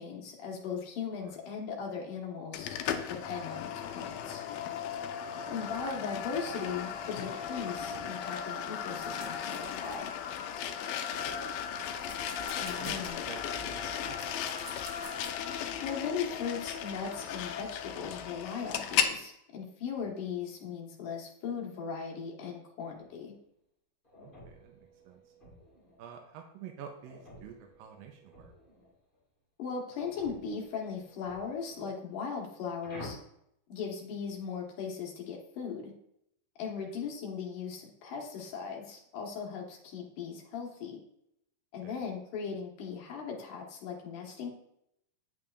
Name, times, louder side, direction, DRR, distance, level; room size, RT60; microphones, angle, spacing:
voice 1, 0.0-2.7 3.1-4.4 5.5-10.1 12.6-13.2 15.8-23.3 29.6-33.2 33.7-35.9 36.6-41.0 41.7-44.5, left 6 dB, 70° left, 0 dB, 2.9 m, -38 dB
sound 1, 2.5-19.2, left 8 dB, 90° left, 2.3 m, -36 dB
voice 2, 5.3-5.9 11.1-12.0 12.8-12.9 13.3-14.7 24.2-25.3 26.0-28.5 36.8-36.9 41.8-42.0, right 8 dB, 90° right, 3 dB, 2.5 m, -50 dB
sound 2, 8.9-10.7 11.2-15.3, right 4 dB, 70° right, 2.9 m, -51 dB
sound 3, 22.8-23.3 24.0-26.2 27.0-29.2 29.9-32.1 32.8-33.1, left 1 dB, 35° left, 0.8 m, -52 dB
9.0 x 8.4 x 2.5 m, 0.76 s
omnidirectional pair, 4.0 m